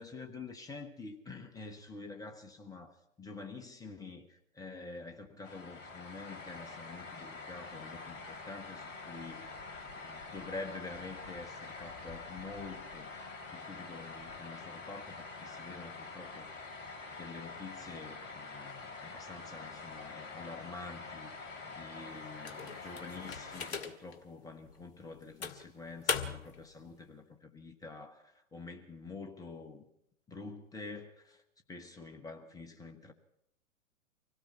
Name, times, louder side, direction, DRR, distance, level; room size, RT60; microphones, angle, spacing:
voice 1, 0.0-13.1 13.5-29.9 30.3-31.4 31.7-33.1, left 3 dB, 10° left, 1.3 m, -47 dB
sound 1, 5.4-23.7, left 3 dB, 25° left, 3.2 m, -46 dB
sound 2, 22.4-24.2 24.7-24.8 25.4-26.6, left 6 dB, 50° left, 2.0 m, -38 dB
25.5 x 17.5 x 5.8 m
figure-of-eight pair, 110°, 40 cm